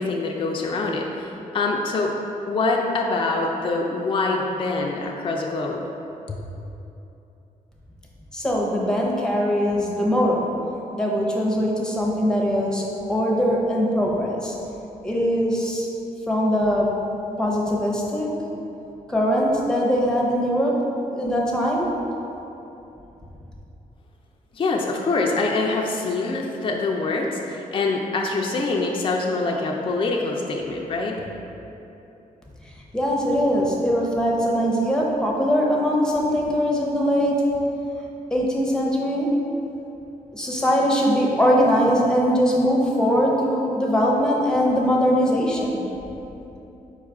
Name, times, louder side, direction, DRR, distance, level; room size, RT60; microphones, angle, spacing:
voice 1, 0.0-2.1 2.5-5.8 6.3-6.4 24.5-31.2, left 3 dB, 35° left, -1 dB, 0.4 m, -25 dB
voice 2, 8.3-10.5 10.9-12.8 13.1-14.5 15.0-15.9 16.3-16.9 17.4-18.3 19.1-20.8 21.1-21.9 32.9-37.3 38.3-39.3 40.3-45.8, equal, 5° left, -3 dB, 0.7 m, -21 dB
4.7 x 2.4 x 4.6 m, 2.9 s
cardioid pair, 85°, 15 cm